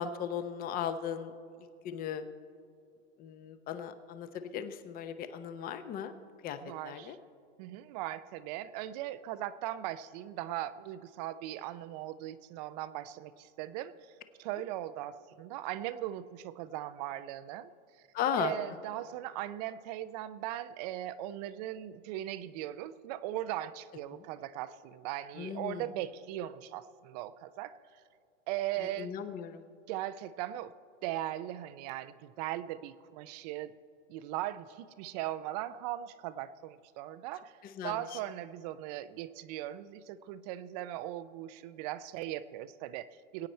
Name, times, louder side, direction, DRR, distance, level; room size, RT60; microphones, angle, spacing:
voice 1, 0.0-1.3 1.8-2.2 3.2-6.1 6.4-6.6 6.8-7.2 18.1-18.5 24.1-24.2 25.4-25.9 28.8-29.6 37.6-38.2, left 8 dB, 25° left, 10 dB, 0.7 m, -37 dB
voice 2, 6.6-7.2 7.6-14.1 14.4-17.7 18.4-27.7 28.5-29.2 29.9-30.7 31.0-33.8 34.1-37.6 37.8-43.5, right 13 dB, 35° right, 15 dB, 0.4 m, -39 dB
22.0 x 8.9 x 4.3 m, 2.3 s
hypercardioid pair, 130°, 36 cm